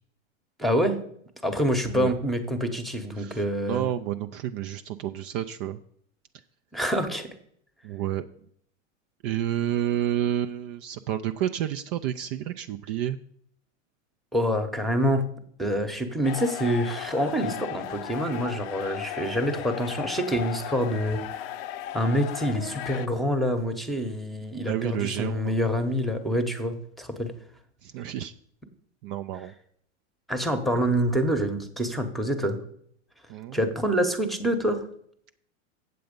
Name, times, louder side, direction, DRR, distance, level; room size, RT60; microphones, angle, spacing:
voice 1, 0.6-1.0 1.4-3.8 6.7-7.3 14.3-15.3 15.6-21.4 21.9-27.3 30.3-32.6 33.5-34.8, equal, ahead, 8 dB, 1.0 m, -26 dB
voice 2, 3.7-5.8 7.8-8.2 9.2-13.2 24.6-25.5 27.8-28.3 29.0-29.5 33.3-33.6, right 11 dB, 45° right, 9 dB, 0.5 m, -30 dB
sound 1, 16.2-23.1, left 12 dB, 50° left, 0.5 m, -36 dB
8.0 x 7.7 x 5.3 m, 0.66 s
hypercardioid pair, 120°, 38 cm